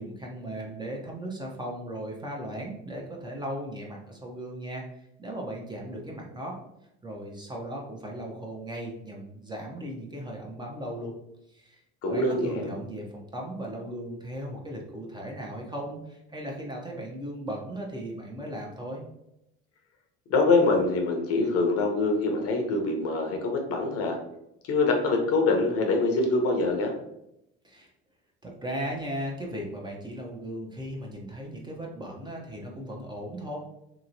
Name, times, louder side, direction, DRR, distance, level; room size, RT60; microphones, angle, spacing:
voice 1, 0.0-4.9 5.2-6.6 7.0-11.1 11.5-11.8 12.1-19.0 27.6-27.8 28.4-33.6, right 1 dB, 15° right, -1 dB, 0.7 m, -37 dB
voice 2, 12.0-12.7 20.3-24.2 24.6-27.0, left 3 dB, 55° left, 3 dB, 0.8 m, -24 dB
2.9 x 2.8 x 2.6 m, 0.83 s
supercardioid pair, 85°, 29 cm